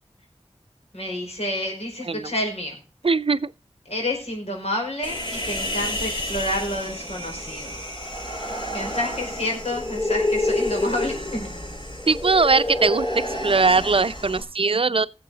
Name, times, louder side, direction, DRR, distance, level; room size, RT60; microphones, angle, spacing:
voice 1, 0.9-2.8 3.9-7.9 8.7-11.5, left 1 dB, 90° left, 5.1 m, -29 dB
voice 2, 3.0-3.5 12.1-13.1 13.4-15.1, right 4 dB, 60° right, 0.5 m, -20 dB
Human voice, 5.0-14.4, left 1 dB, 50° left, 6.9 m, -29 dB
18.0 x 7.7 x 3.9 m
wide cardioid pair, 60°, 10 cm